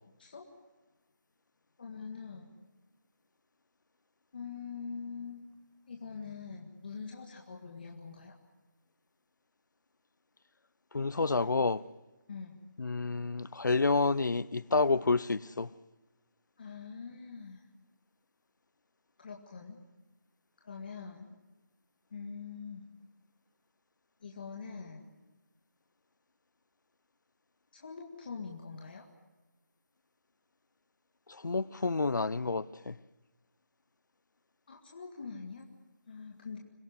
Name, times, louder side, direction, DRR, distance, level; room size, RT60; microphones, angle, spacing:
voice 1, 1.8-2.5 4.3-5.4 5.9-8.3 12.3-12.6 16.6-17.6 19.2-19.8 20.6-21.4 22.1-22.9 24.2-25.1 27.7-29.1 34.7-35.7 36.1-36.6, left 5 dB, 30° left, 1.9 m, -44 dB
voice 2, 10.9-11.8 12.8-15.7 31.3-33.0, left 3 dB, 75° left, 0.7 m, -29 dB
26.5 x 17.5 x 9.7 m
figure-of-eight pair, 175°, 10 cm